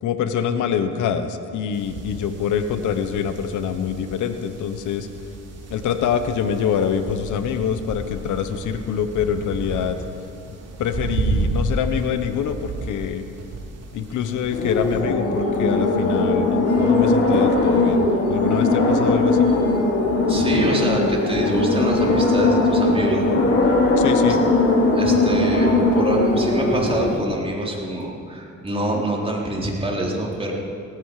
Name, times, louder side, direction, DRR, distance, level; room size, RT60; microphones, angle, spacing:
voice 1, 0.0-5.1 5.7-10.0 10.5-13.2 13.9-19.5 24.0-24.4, left 8 dB, 80° left, 9 dB, 1.1 m, -25 dB
sound 1, 1.7-15.0, right 2 dB, 55° right, 3.4 m, -32 dB
sound 2, 14.5-27.2, left 2 dB, 50° left, 3.6 m, -19 dB
voice 2, 20.3-23.4 24.3-24.4 24.9-30.5, right 1 dB, 20° right, -2 dB, 4.0 m, -25 dB
18.0 x 15.5 x 4.9 m, 2.7 s
cardioid pair, 90°, 30 cm